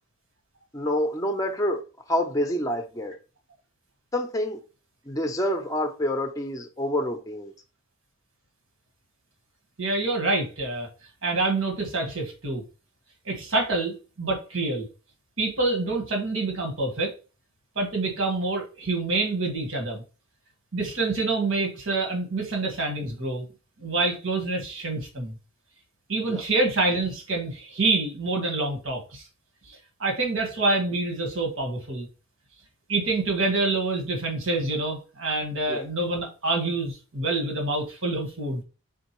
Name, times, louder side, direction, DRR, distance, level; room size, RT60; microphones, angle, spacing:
voice 1, 0.7-1.8 2.1-3.1 4.1-4.6 5.1-7.5 26.3-26.4 35.7-35.8, left 1 dB, 15° left, 0.6 m, -27 dB
voice 2, 9.8-10.9 11.2-12.6 13.2-14.9 15.4-17.1 17.7-20.0 20.7-23.5 23.8-25.3 26.1-29.3 29.6-32.1 32.9-38.6, right 2 dB, 65° right, 1.5 m, -27 dB
4.4 x 3.8 x 3.0 m
head